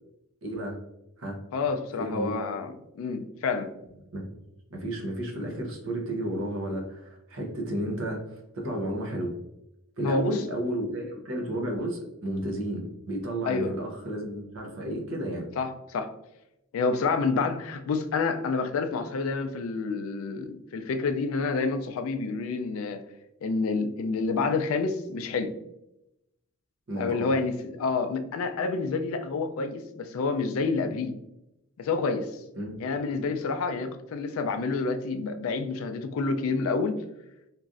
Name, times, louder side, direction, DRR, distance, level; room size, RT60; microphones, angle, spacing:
voice 1, 0.4-0.8 1.2-1.4 2.0-2.4 4.1-4.4 4.7-8.2 8.5-9.3 10.0-15.5 26.9-27.3 32.5-32.8, right 1 dB, 65° right, 0.7 m, -32 dB
voice 2, 1.5-3.7 10.0-10.4 13.5-13.8 15.6-16.1 16.7-23.0 23.4-25.5 27.0-31.1 31.8-32.3 32.8-37.0, left 4 dB, 70° left, 0.3 m, -28 dB
3.0 x 2.5 x 2.4 m
head